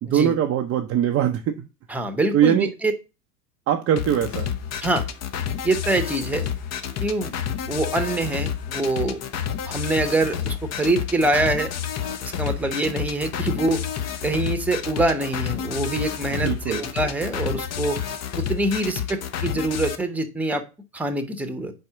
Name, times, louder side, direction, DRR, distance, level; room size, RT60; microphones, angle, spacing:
voice 1, 0.0-1.7 2.3-2.7 3.7-4.5 16.3-16.8, right 10 dB, 30° right, 0.6 m, -22 dB
voice 2, 1.9-2.6 2.8-2.9 4.8-5.1 5.6-6.5 7.0-7.3 7.7-9.2 9.6-11.7 12.4-13.8 14.2-18.0 18.4-20.6 20.9-21.7, right 2 dB, 5° right, 0.9 m, -24 dB
sound 1, 4.0-20.0, left 8 dB, 30° left, 0.8 m, -30 dB
4.7 x 4.4 x 5.8 m
hypercardioid pair, 100°, 49 cm